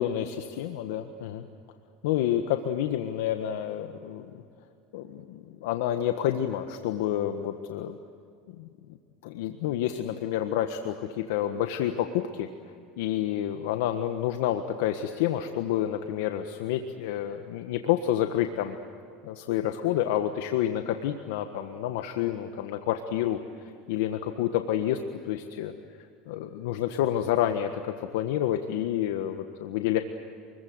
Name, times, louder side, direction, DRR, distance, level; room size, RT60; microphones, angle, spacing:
voice 1, 0.0-1.5 2.0-4.4 4.9-8.0 8.6-8.7 9.2-12.5 13.0-18.8 19.2-25.7 26.3-30.0, left 11 dB, 80° left, 7 dB, 1.4 m, -29 dB
28.5 x 22.5 x 8.0 m, 2.4 s
supercardioid pair, 120°, 0 cm